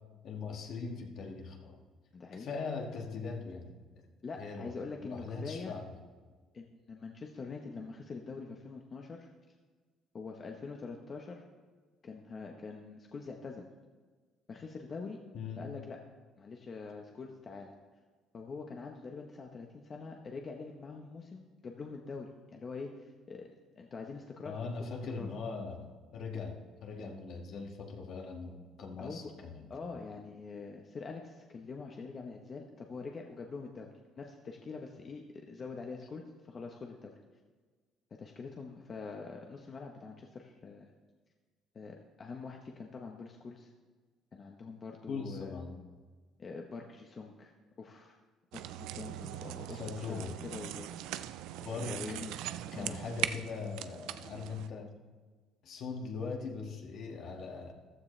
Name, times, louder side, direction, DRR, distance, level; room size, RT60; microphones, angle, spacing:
voice 1, 0.2-1.8 2.3-3.8 4.4-4.7 5.0-5.9 15.3-15.7 24.5-29.7 45.1-45.7 49.7-50.4 51.6-52.0 52.7-54.9 55.6-57.7, left 4 dB, 60° left, 1 dB, 1.9 m, -40 dB
voice 2, 2.1-2.5 4.2-5.7 6.5-9.3 10.1-11.4 12.0-13.6 14.5-15.2 15.6-16.0 16.4-17.7 18.3-24.5 25.2-25.3 29.0-29.3 29.7-37.1 38.1-40.9 41.7-43.7 44.3-45.6 46.4-47.5 47.8-48.2 48.5-51.3 51.7-52.4 52.7-53.0, left 4 dB, 35° left, 2 dB, 1.1 m, -44 dB
sound 1, 48.5-54.7, right 13 dB, 85° right, 0.4 m, -40 dB
14.5 x 12.5 x 3.3 m, 1.4 s
cardioid pair, 110°, 0 cm